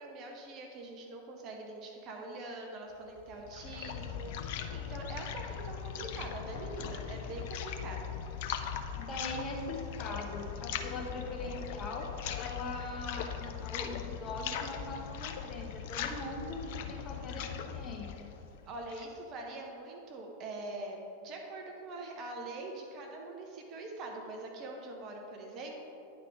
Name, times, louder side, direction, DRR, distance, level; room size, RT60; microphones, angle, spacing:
voice 1, 0.0-8.1 18.7-25.7, right 2 dB, 35° right, 1 dB, 1.0 m, -43 dB
sound 1, 3.2-19.2, left 8 dB, 50° left, 0.5 m, -40 dB
voice 2, 8.9-16.6 16.9-18.3, left 2 dB, 25° left, 0 dB, 1.2 m, -41 dB
9.5 x 4.2 x 4.7 m, 2.8 s
figure-of-eight pair, 90°, 0 cm